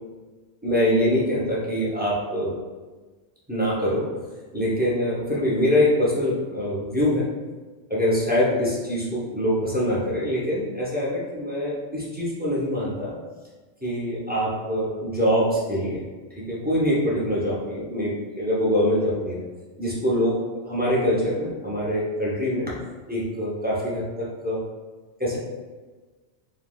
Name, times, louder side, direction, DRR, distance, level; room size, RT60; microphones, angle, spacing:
voice 1, 0.6-2.6 3.5-4.1 4.5-7.3 7.9-13.2 13.8-16.0 16.4-19.4 19.8-22.7 23.1-24.6 25.2-25.4, equal, 15° right, -7 dB, 0.3 m, -24 dB
3.3 x 2.3 x 2.2 m, 1.3 s
omnidirectional pair, 1.2 m